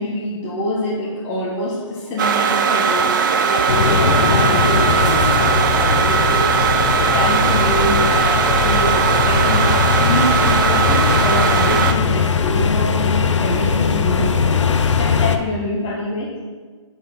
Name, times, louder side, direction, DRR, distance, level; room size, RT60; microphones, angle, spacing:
voice 1, 0.0-16.4, left 1 dB, 25° left, -4 dB, 1.3 m, -25 dB
sound 1, 2.2-11.9, right 7 dB, 40° right, 0.7 m, -18 dB
sound 2, 3.7-15.4, left 5 dB, 65° left, 0.8 m, -19 dB
7.2 x 5.9 x 6.5 m, 1.4 s
hypercardioid pair, 150°, 16 cm